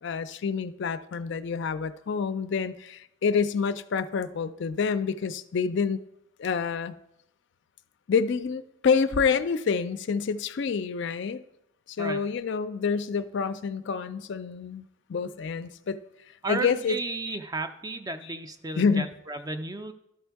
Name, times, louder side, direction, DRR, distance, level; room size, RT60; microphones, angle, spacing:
voice 1, 0.0-6.0 6.4-6.9 8.1-11.4 11.9-16.0 16.5-17.0 17.3-17.4 18.2-18.3 18.8-19.1, left 5 dB, 55° left, 13 dB, 0.4 m, -27 dB
voice 2, 16.4-19.9, right 2 dB, 15° right, 8 dB, 0.4 m, -33 dB
12.0 x 4.3 x 4.6 m, 0.81 s
head